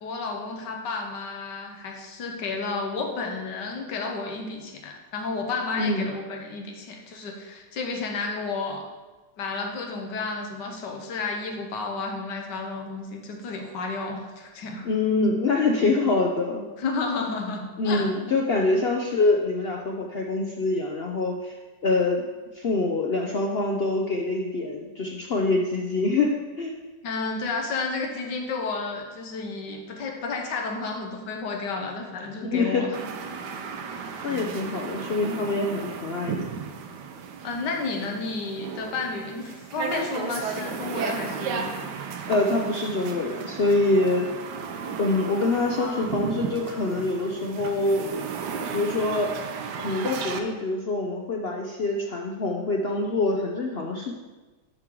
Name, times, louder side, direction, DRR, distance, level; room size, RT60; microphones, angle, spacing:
voice 1, 0.0-8.9 9.4-14.9 16.8-18.1 27.0-33.0 37.4-41.7 45.8-46.1, left 4 dB, 90° left, 2 dB, 1.6 m, -32 dB
voice 2, 5.8-6.1 14.8-16.7 17.8-21.6 21.8-22.2 22.5-26.7 32.4-32.9 34.2-36.5 42.3-44.3 45.0-48.1 48.7-49.3 49.8-54.1, left 2 dB, 65° left, 1 dB, 0.6 m, -25 dB
sound 1, 32.9-50.4, right 6 dB, 80° right, 1.3 m, -34 dB
11.5 x 4.6 x 3.7 m, 1.2 s
omnidirectional pair, 1.8 m